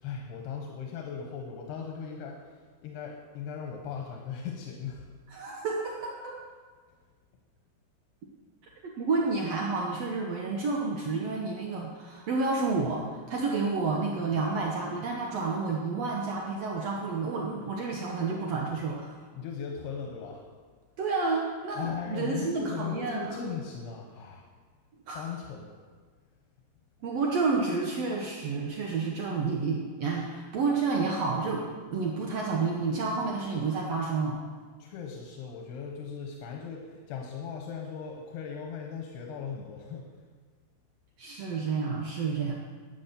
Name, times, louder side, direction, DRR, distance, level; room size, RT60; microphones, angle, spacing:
voice 1, 0.0-5.1 19.3-20.5 21.8-24.5 25.1-25.7 34.8-40.1, left 6 dB, 85° left, 1 dB, 3.2 m, -38 dB
voice 2, 5.3-6.4 9.0-19.2 21.0-23.4 25.1-25.3 27.0-34.3 41.2-42.5, right 4 dB, 75° right, -1 dB, 1.4 m, -30 dB
11.5 x 9.6 x 6.8 m, 1.5 s
omnidirectional pair, 4.6 m